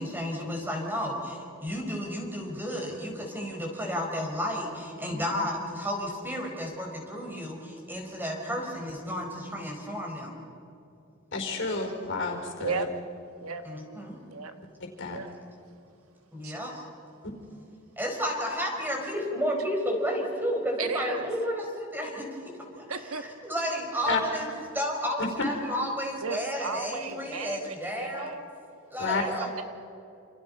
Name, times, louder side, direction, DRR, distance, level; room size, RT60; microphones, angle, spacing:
voice 1, 0.0-10.3 13.6-14.2 16.3-16.8 18.0-22.5 23.2-28.3 28.9-29.5, equal, 10° right, 1 dB, 5.0 m, -32 dB
voice 2, 11.3-12.8 14.8-15.2 24.1-24.2 25.2-25.3 29.0-29.2, left 3 dB, 60° left, 3 dB, 4.8 m, -30 dB
voice 3, 20.8-21.3 22.9-23.2 26.2-28.4 29.0-29.6, right 4 dB, 75° right, 8 dB, 1.5 m, -35 dB
28.5 x 28.0 x 5.4 m, 2.8 s
head